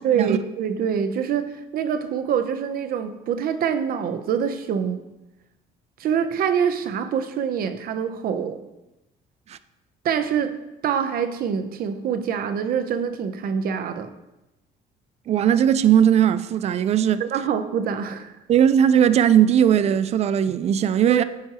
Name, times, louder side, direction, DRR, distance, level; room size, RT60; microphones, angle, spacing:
voice 1, 0.0-5.0 6.0-8.6 10.0-10.6 10.8-14.1 17.2-18.3 21.1-21.2, right 7 dB, 60° right, 0.7 m, -25 dB
voice 2, 15.3-17.2 18.5-21.2, right 9 dB, 40° right, 0.4 m, -18 dB
13.5 x 4.6 x 2.9 m
cardioid pair, 110°, 17 cm